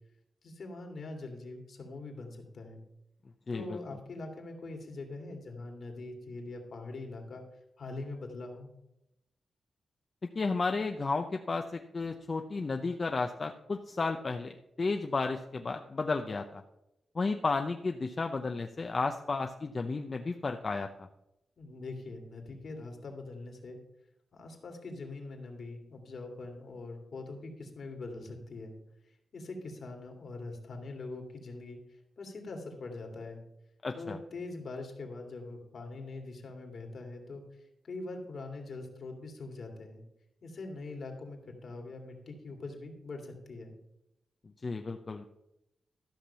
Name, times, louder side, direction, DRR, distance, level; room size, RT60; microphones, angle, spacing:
voice 1, 0.4-2.8 3.5-7.4 7.8-8.7 21.6-23.8 24.3-28.8 29.3-31.8 32.2-33.4 33.9-40.0 40.4-43.8, left 3 dB, 65° left, 3 dB, 2.4 m, -43 dB
voice 2, 3.5-3.8 10.3-14.5 14.8-16.6 17.1-20.9 33.8-34.2 44.6-45.2, left 3 dB, 40° left, 4 dB, 0.7 m, -33 dB
13.0 x 6.0 x 5.7 m, 0.86 s
cardioid pair, 85°, 0 cm